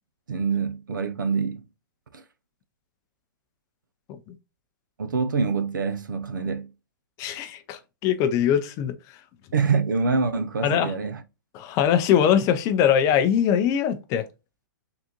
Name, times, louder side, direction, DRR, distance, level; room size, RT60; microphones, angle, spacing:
voice 1, 0.3-1.6 2.1-2.2 5.0-6.7 9.5-11.2, right 5 dB, 80° right, 0.5 m, -25 dB
voice 2, 7.2-9.2 10.6-10.9 11.5-14.2, left 9 dB, 30° left, 0.5 m, -22 dB
3.7 x 2.4 x 2.8 m
hypercardioid pair, 120°, 10 cm